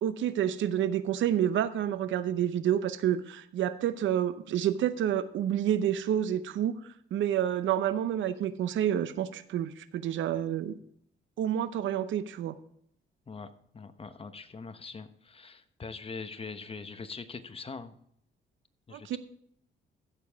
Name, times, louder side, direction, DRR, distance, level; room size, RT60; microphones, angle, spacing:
voice 1, 0.0-6.8 7.1-10.8 11.4-12.5 18.9-19.2, right 10 dB, 75° right, 14 dB, 0.7 m, -29 dB
voice 2, 13.7-17.9 18.9-19.2, left 4 dB, 30° left, 10 dB, 1.0 m, -42 dB
15.5 x 7.0 x 3.6 m, 0.69 s
cardioid pair, 90°, 20 cm